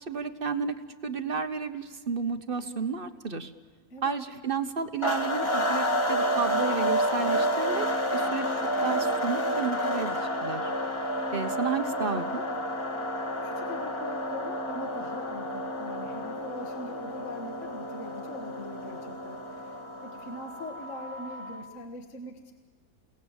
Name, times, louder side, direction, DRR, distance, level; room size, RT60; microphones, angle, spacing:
voice 1, 0.1-3.5 4.0-7.9 8.1-10.7 11.3-12.4, right 5 dB, 40° right, 9 dB, 1.1 m, -32 dB
voice 2, 3.9-4.2 13.4-22.5, left 1 dB, 50° left, 4 dB, 1.9 m, -42 dB
sound 1, 5.0-21.7, equal, 15° left, 1.8 m, -30 dB
29.5 x 18.0 x 7.2 m, 1.5 s
omnidirectional pair, 1.7 m